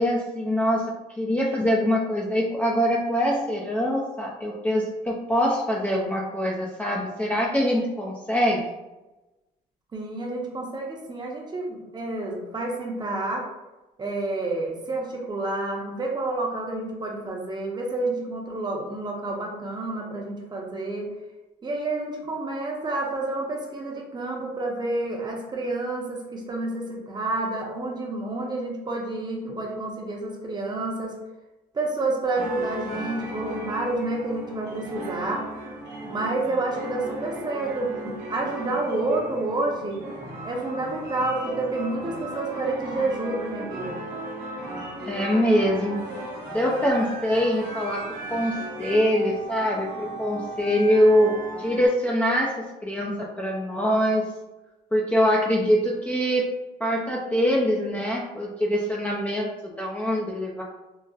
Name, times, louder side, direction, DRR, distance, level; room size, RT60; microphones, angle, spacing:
voice 1, 0.0-8.6 45.0-46.0 46.5-48.0 48.3-54.2 54.9-56.5 56.8-60.6, equal, 10° left, -3 dB, 0.4 m, -24 dB
voice 2, 9.9-13.5 14.0-21.1 21.6-31.2 31.7-35.4 36.0-40.0 40.4-44.0, right 2 dB, 25° right, 0 dB, 0.7 m, -29 dB
sound 1, 32.3-51.9, right 1 dB, 80° right, 1.0 m, -36 dB
3.9 x 2.0 x 2.3 m, 1.0 s
cardioid pair, 110°, 17 cm